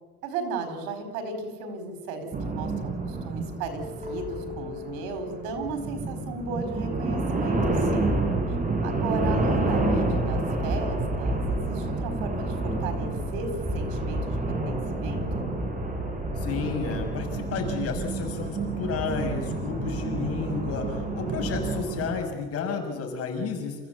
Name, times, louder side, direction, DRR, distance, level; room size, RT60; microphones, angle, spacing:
voice 1, 0.2-8.2 8.8-15.6, right 3 dB, 85° right, 7 dB, 4.5 m, -35 dB
sound 1, 2.3-22.2, right 2 dB, 25° right, 4.4 m, -29 dB
sound 2, 4.0-11.9, left 1 dB, 5° left, 3.3 m, -42 dB
voice 2, 16.4-23.8, left 5 dB, 50° left, 3 dB, 6.0 m, -31 dB
28.0 x 15.5 x 8.4 m, 1.4 s
cardioid pair, 125°, 30 cm